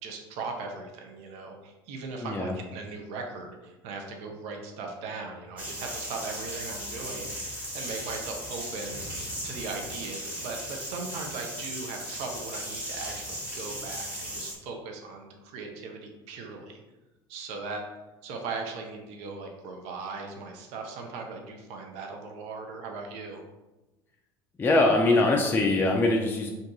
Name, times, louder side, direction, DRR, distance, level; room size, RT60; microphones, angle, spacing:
voice 1, 0.0-9.0 9.4-16.8 17.3-17.8 18.2-23.4, right 4 dB, 55° right, 3 dB, 0.6 m, -38 dB
voice 2, 2.2-2.6 24.6-26.5, left 2 dB, 15° left, 1 dB, 0.4 m, -22 dB
sound 1, 5.6-14.5, equal, 10° right, 1.3 m, -37 dB
2.7 x 2.6 x 3.5 m, 1.1 s
figure-of-eight pair, 70°, 13 cm